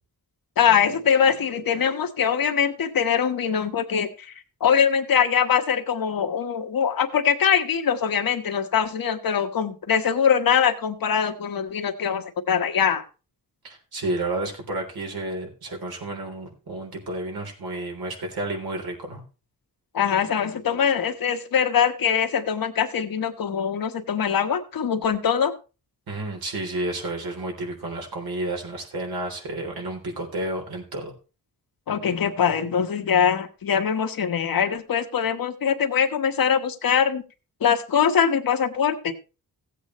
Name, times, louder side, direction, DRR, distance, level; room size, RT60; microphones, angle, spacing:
voice 1, 0.6-4.3 4.6-13.0 19.9-25.5 31.9-37.2 37.6-39.1, left 7 dB, 65° left, 7 dB, 1.3 m, -22 dB
voice 2, 13.6-19.2 26.1-31.1, right 2 dB, 75° right, 2 dB, 3.5 m, -31 dB
16.5 x 8.3 x 3.1 m, 0.32 s
wide cardioid pair, 105°, 37 cm